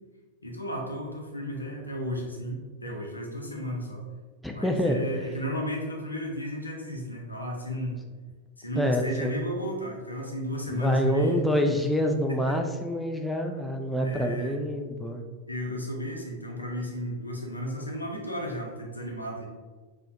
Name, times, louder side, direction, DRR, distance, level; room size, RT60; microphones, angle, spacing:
voice 1, 0.4-4.0 4.5-8.0 8.6-11.8 12.3-12.4 14.0-14.6 15.5-19.5, equal, 80° left, 0 dB, 0.6 m, -34 dB
voice 2, 4.4-5.0 8.8-9.4 10.7-15.2, equal, 5° left, 3 dB, 0.3 m, -26 dB
4.2 x 2.2 x 2.7 m, 1.4 s
figure-of-eight pair, 90°, 0 cm